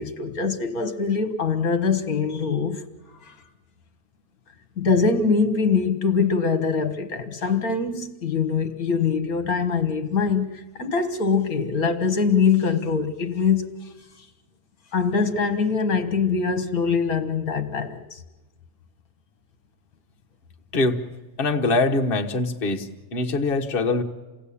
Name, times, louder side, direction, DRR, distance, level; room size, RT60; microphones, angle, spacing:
voice 1, 0.0-2.8 3.2-3.4 4.8-13.7 14.9-18.2, left 5 dB, 60° left, 8 dB, 1.6 m, -23 dB
voice 2, 21.4-24.0, left 2 dB, 35° left, 2 dB, 1.4 m, -23 dB
28.0 x 18.0 x 8.5 m, 1.2 s
omnidirectional pair, 1.8 m